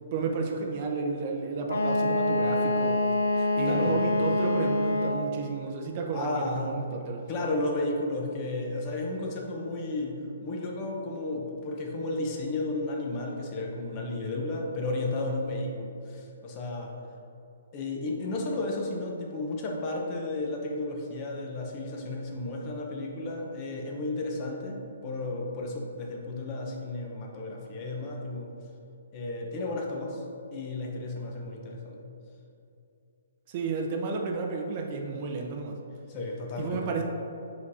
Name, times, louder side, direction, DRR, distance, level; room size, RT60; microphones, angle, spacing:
voice 1, 0.1-3.0 3.6-7.3 33.5-35.8 36.6-37.0, right 4 dB, 35° right, 1 dB, 0.6 m, -32 dB
Wind instrument woodwind instrument, 1.7-5.4, left 2 dB, 85° left, 0.6 m, -26 dB
voice 2, 3.4-4.0 6.1-6.7 7.3-17.0 17.7-28.6 29.1-30.2 30.5-32.1 36.1-36.9, left 2 dB, 25° left, 0 dB, 0.7 m, -33 dB
5.0 x 4.2 x 4.8 m, 2.7 s
hypercardioid pair, 160°, 0 cm